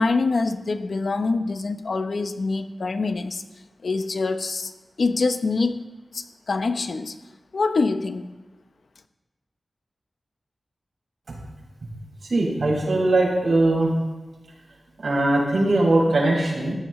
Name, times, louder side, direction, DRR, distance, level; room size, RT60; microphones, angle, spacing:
voice 1, 0.0-3.4 3.8-4.7 5.0-5.8 6.1-7.1 7.5-8.3, left 3 dB, 65° left, 9 dB, 0.8 m, -25 dB
voice 2, 12.3-13.9 15.0-16.7, right 2 dB, 65° right, -4 dB, 5.6 m, -20 dB
16.5 x 14.0 x 3.2 m, 1.2 s
wide cardioid pair, 90°, 0 cm